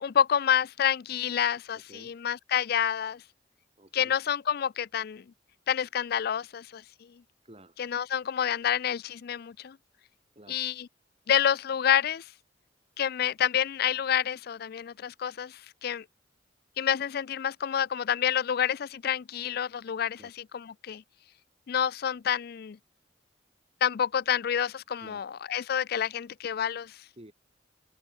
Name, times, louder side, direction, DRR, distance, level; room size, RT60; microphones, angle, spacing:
voice 1, 0.0-3.2 3.9-5.2 5.7-6.8 7.8-9.8 10.5-10.9 11.3-12.3 13.0-16.0 16.8-20.2 20.5-21.0 21.7-22.8 23.8-27.0, left 9 dB, 55° left, 0.4 m, -28 dB
voice 2, 1.3-2.2 3.8-4.2 7.4-8.0 10.3-10.6 20.2-20.3 25.0-25.3 27.2-27.3, right 1 dB, 35° right, 6.1 m, -53 dB
head